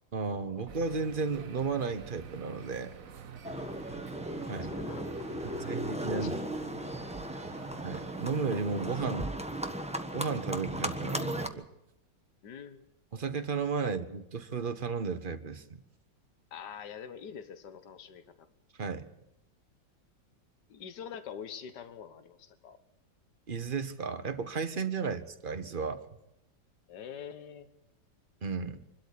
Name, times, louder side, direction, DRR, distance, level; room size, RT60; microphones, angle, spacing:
voice 1, 0.1-2.9 4.5-4.7 5.6-6.4 7.8-9.3 10.1-11.7 13.1-15.8 18.8-19.1 23.5-26.0 28.4-28.8, right 5 dB, 35° right, 9 dB, 1.1 m, -34 dB
sound 1, 0.7-9.0, right 6 dB, 50° right, 1.4 m, -48 dB
Livestock farm animals working animals, 3.4-11.5, right 1 dB, 5° right, 1.0 m, -36 dB
voice 2, 4.6-5.8 6.2-6.5 7.5-7.6 12.4-12.8 13.8-13.9 16.5-18.5 20.7-22.8 26.9-27.7, left 7 dB, 65° left, 11 dB, 1.9 m, -45 dB
24.5 x 12.5 x 8.5 m, 0.89 s
omnidirectional pair, 2.0 m